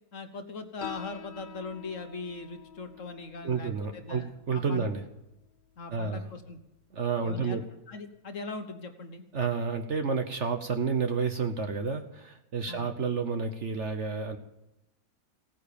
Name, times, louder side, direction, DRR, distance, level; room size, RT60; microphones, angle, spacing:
voice 1, 0.1-4.9 5.8-6.6 7.2-7.6 7.9-9.2 12.7-12.9, left 3 dB, 50° left, 7 dB, 1.5 m, -40 dB
Piano, 0.8-7.9, left 9 dB, 85° left, 0.4 m, -49 dB
voice 2, 3.4-5.0 5.9-6.3 6.9-7.6 9.3-14.4, right 5 dB, 50° right, 7 dB, 1.1 m, -30 dB
16.5 x 9.7 x 6.8 m, 0.93 s
omnidirectional pair, 1.8 m